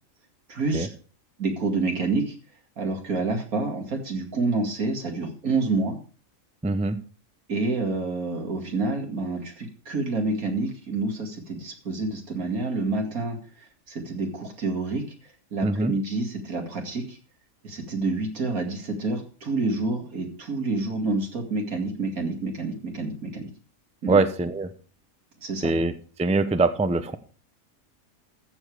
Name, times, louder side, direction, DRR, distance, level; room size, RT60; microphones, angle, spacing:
voice 1, 0.5-0.9 1.4-2.3 2.8-6.0 7.5-13.4 13.9-15.0 15.5-17.2 17.6-23.5 24.0-24.2 25.4-25.7, right 3 dB, 90° right, 3 dB, 2.7 m, -28 dB
voice 2, 6.6-7.0 15.6-15.9 24.1-24.7 25.6-25.9 26.2-27.2, right 3 dB, 5° right, 10 dB, 0.5 m, -23 dB
14.0 x 7.2 x 4.9 m, 0.38 s
omnidirectional pair, 1.5 m